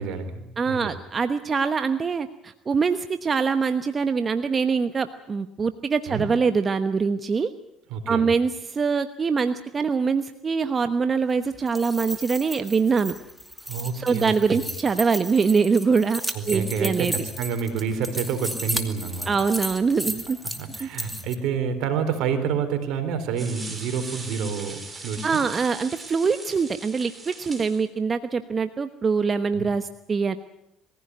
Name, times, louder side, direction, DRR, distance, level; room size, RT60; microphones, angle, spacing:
voice 1, 0.0-0.8 6.1-6.3 7.9-8.3 13.6-14.6 16.3-19.3 20.0-20.1 20.4-25.4 29.5-29.7, right 6 dB, 75° right, 9 dB, 3.9 m, -28 dB
voice 2, 0.6-7.5 8.1-13.1 13.9-16.2 16.5-17.1 19.3-20.4 20.8-20.9 25.2-30.4, right 5 dB, 35° right, 10 dB, 1.1 m, -24 dB
sound 1, 11.5-21.4, equal, ahead, 2.5 m, -34 dB
sound 2, 23.4-27.8, right 3 dB, 15° right, 6.3 m, -40 dB
21.5 x 16.0 x 9.5 m, 0.82 s
supercardioid pair, 80°, 0 cm